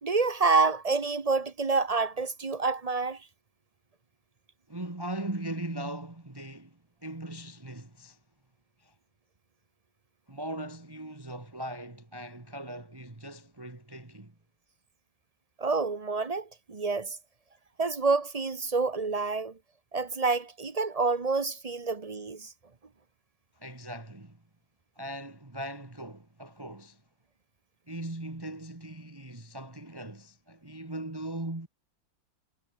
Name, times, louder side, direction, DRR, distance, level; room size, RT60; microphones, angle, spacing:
voice 1, 0.0-3.3 15.6-17.2 17.8-19.6 19.9-22.5, right 4 dB, 30° right, 0.7 m, -28 dB
voice 2, 4.7-8.2 8.8-8.9 10.3-14.3 23.6-24.4 24.9-27.0 27.9-31.7, right 1 dB, 15° right, 1.7 m, -39 dB
omnidirectional pair, 2.1 m